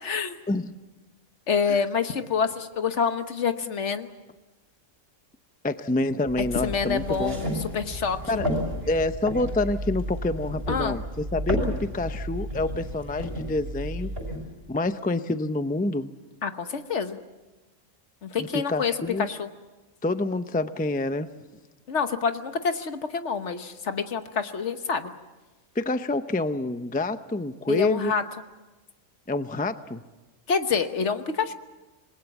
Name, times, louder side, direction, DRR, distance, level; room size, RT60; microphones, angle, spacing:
voice 1, 0.0-0.4 1.5-4.1 6.6-8.4 10.7-11.0 16.4-17.2 18.2-19.5 21.9-25.1 27.7-28.2 30.5-31.5, left 6 dB, 65° left, 9 dB, 1.5 m, -27 dB
voice 2, 5.6-7.4 8.3-8.5 8.9-14.1 14.7-16.1 18.4-19.3 20.0-21.3 25.7-28.1 29.3-30.0, left 2 dB, 10° left, 10 dB, 0.5 m, -27 dB
sound 1, 6.3-14.4, equal, 50° right, 5.9 m, -32 dB
27.0 x 21.5 x 7.2 m, 1.2 s
omnidirectional pair, 1.3 m